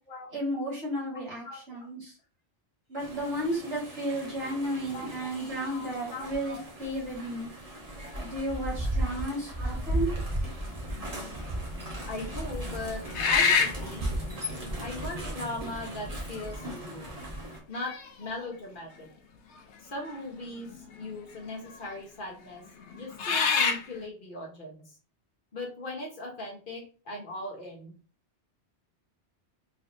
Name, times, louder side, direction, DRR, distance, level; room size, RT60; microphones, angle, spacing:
voice 1, 0.3-2.1 2.9-7.5 8.2-10.1, right 1 dB, 60° right, -4 dB, 2.3 m, -33 dB
voice 2, 1.1-1.6 4.9-5.1 5.7-6.6 9.6-9.7 12.1-14.1 14.8-17.2 17.7-19.1 19.8-22.6 22.9-24.9 25.5-28.0, left 2 dB, 50° left, -1 dB, 1.3 m, -39 dB
sound 1, 3.0-17.6, right 1 dB, 35° right, 1.1 m, -36 dB
sound 2, 11.0-11.4 12.0-12.1 13.1-13.9 15.1-15.2 16.2-16.6 17.1-17.2 17.8-18.4 20.1-20.2 20.5-21.1 21.7-21.9 22.8-23.9, left 5 dB, 80° left, 1.0 m, -26 dB
4.0 x 3.1 x 2.7 m, 0.38 s
omnidirectional pair, 1.2 m